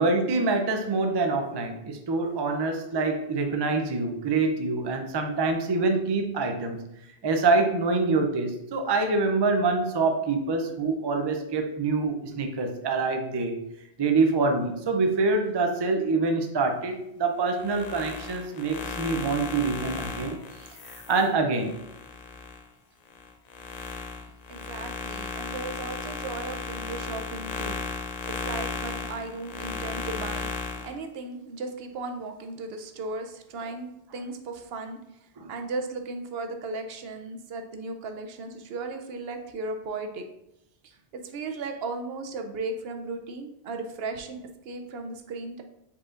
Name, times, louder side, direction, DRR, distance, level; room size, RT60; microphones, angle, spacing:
voice 1, 0.0-6.8 7.2-13.6 14.0-20.4 21.1-21.7 35.4-35.5, right 3 dB, 45° right, 5 dB, 0.3 m, -25 dB
sound 1, 17.5-22.6 23.1-30.9, left 5 dB, 50° left, 0.5 m, -35 dB
voice 2, 24.5-27.8 28.4-35.0 35.5-40.2 40.8-45.6, right 3 dB, 70° right, 6 dB, 0.8 m, -36 dB
5.0 x 4.1 x 2.5 m, 0.83 s
omnidirectional pair, 1.1 m